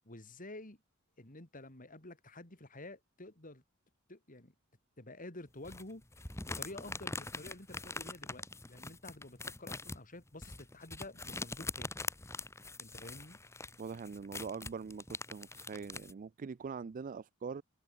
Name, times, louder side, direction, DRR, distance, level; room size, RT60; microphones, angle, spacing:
voice 1, 0.0-0.8 1.2-3.6 4.1-4.5 5.0-6.1 6.5-11.9 12.8-13.4, left 2 dB, 40° left, 3.7 m, -50 dB
sound 1, 5.6-16.1, left 3 dB, 15° left, 1.5 m, -43 dB
voice 2, 13.8-17.6, right 5 dB, 40° right, 0.4 m, -43 dB
open air
head